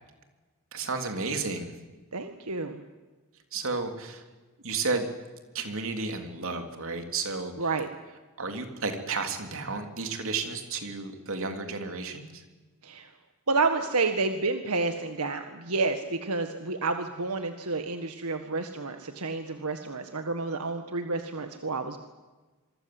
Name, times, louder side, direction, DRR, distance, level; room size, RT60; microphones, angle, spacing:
voice 1, 0.7-1.7 3.5-4.2 4.6-5.1 5.5-7.5 8.4-12.4, right 4 dB, 65° right, 6 dB, 3.4 m, -32 dB
voice 2, 2.1-2.8 7.6-7.9 12.8-13.1 13.5-22.0, right 3 dB, 85° right, 7 dB, 1.8 m, -30 dB
26.5 x 23.5 x 7.9 m, 1.3 s
head